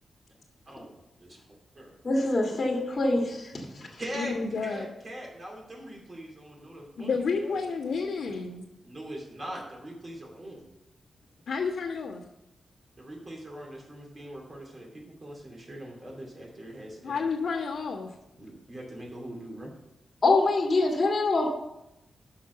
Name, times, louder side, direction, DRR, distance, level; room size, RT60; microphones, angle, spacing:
voice 1, 0.7-1.4 1.7-1.9 4.0-4.3 4.6-7.6 8.8-10.7 13.0-17.2 18.4-19.7, right 1 dB, 35° right, -1 dB, 2.6 m, -42 dB
voice 2, 2.0-4.0 20.2-21.5, left 2 dB, 35° left, -2 dB, 1.7 m, -25 dB
voice 3, 4.1-4.9 7.0-8.7 11.5-12.2 17.0-18.1, left 5 dB, 75° left, -8 dB, 1.4 m, -30 dB
6.4 x 6.0 x 6.7 m, 0.92 s
wide cardioid pair, 130°, 0 cm